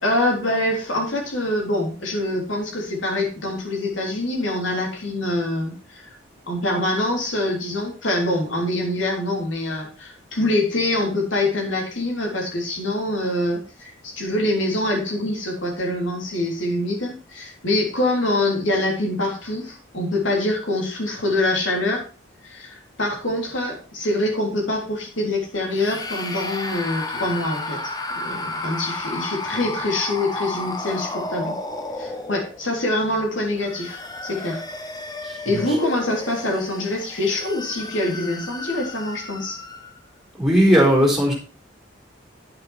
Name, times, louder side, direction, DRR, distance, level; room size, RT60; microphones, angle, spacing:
voice 1, 0.0-6.1 6.5-22.0 22.4-31.6 32.0-34.6 35.5-39.6, left 1 dB, 85° left, 1 dB, 3.5 m, -25 dB
sound 1, 25.7-32.8 33.5-40.0, left 2 dB, 20° left, 1.1 m, -32 dB
voice 2, 35.2-35.6 40.4-41.3, equal, 5° right, -2 dB, 3.9 m, -17 dB
9.6 x 9.0 x 4.4 m, 0.35 s
head